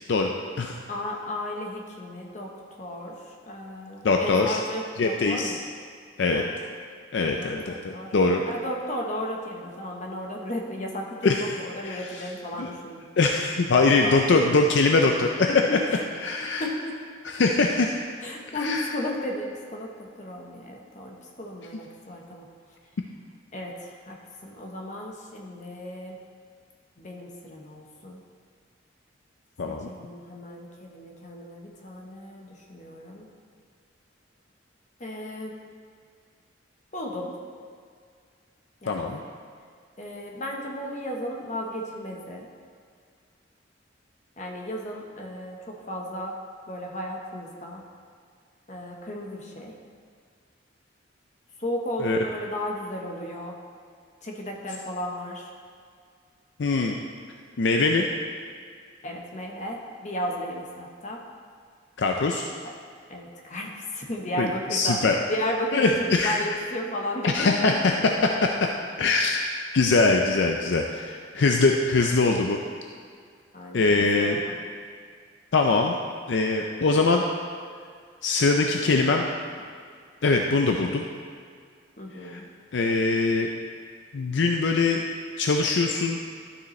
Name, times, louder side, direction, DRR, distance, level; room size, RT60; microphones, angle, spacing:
voice 1, 0.9-2.5 2.8-5.6 6.3-6.5 7.2-8.2 8.5-13.1 13.7-14.2 15.5-15.6 15.9-16.0 16.4-17.0 18.2-22.5 23.5-26.2 27.0-28.2 29.6-33.3 35.0-35.6 36.9-37.3 38.8-39.2 40.0-42.5 44.4-46.4 46.7-47.8 48.7-49.7 51.6-53.6 54.2-55.5 59.0-61.2 63.1-68.0 73.5-74.5 82.0-82.5, left 1 dB, 40° left, 0 dB, 1.1 m, -34 dB
voice 2, 4.0-4.6 5.0-5.5 6.2-6.4 7.1-8.4 11.2-11.5 11.8-12.2 12.6-12.7 13.2-15.5 16.2-16.6 17.2-18.0 18.6-18.8 29.6-29.9 38.9-39.2 52.0-52.2 56.6-57.0 57.6-58.1 62.0-62.5 64.4-65.1 65.7-66.4 67.2-67.9 69.0-72.6 73.7-74.4 75.5-76.0 76.3-77.2 78.2-79.3 80.2-81.1 82.2-82.4 82.7-83.5 84.1-85.0 85.4-86.2, left 3 dB, 65° left, 2 dB, 0.5 m, -22 dB
11.5 x 6.8 x 3.2 m, 2.1 s
head